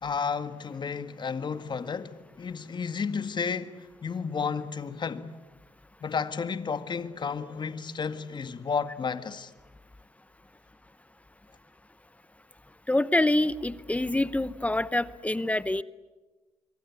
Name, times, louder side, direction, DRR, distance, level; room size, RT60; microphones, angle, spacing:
voice 1, 0.0-5.4 6.0-9.5, left 5 dB, 45° left, 1.8 m, -32 dB
voice 2, 12.9-15.8, left 1 dB, 10° left, 0.9 m, -26 dB
26.5 x 23.5 x 8.5 m
cardioid pair, 80°, 11 cm